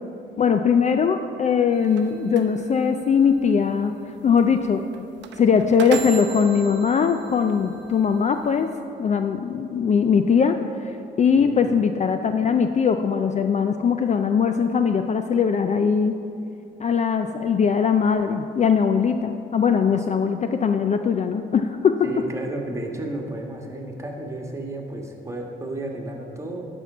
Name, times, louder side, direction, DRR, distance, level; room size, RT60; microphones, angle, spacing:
voice 1, 0.4-3.9 4.2-4.8 5.4-8.7 9.0-16.2 16.8-22.1, left 6 dB, 35° left, 7 dB, 0.4 m, -21 dB
sound 1, 1.7-8.7, right 6 dB, 65° right, 0.7 m, -36 dB
voice 2, 11.3-11.6 22.0-26.6, right 2 dB, 15° right, 0 dB, 1.4 m, -32 dB
11.5 x 4.5 x 6.0 m, 2.7 s
cardioid pair, 90°, 20 cm